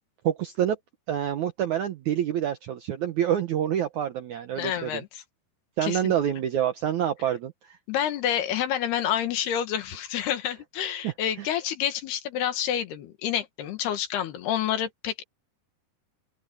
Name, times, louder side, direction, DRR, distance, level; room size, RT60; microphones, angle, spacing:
voice 1, 0.2-0.8 1.1-5.0 5.8-7.8 11.0-11.5, right 10 dB, 75° right, 1.8 m, -27 dB
voice 2, 4.6-5.2 5.8-6.1 7.9-15.2, left 10 dB, 75° left, 3.6 m, -28 dB
open air
omnidirectional pair, 4.7 m